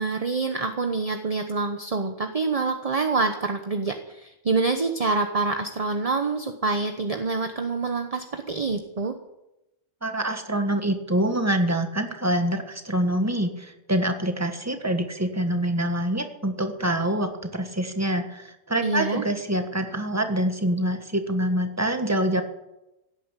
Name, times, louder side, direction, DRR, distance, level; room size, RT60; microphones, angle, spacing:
voice 1, 0.0-9.1 18.8-19.2, right 3 dB, 35° right, 6 dB, 1.1 m, -26 dB
voice 2, 10.0-22.4, right 1 dB, 15° right, 6 dB, 1.5 m, -25 dB
16.5 x 9.4 x 8.3 m, 0.94 s
omnidirectional pair, 1.2 m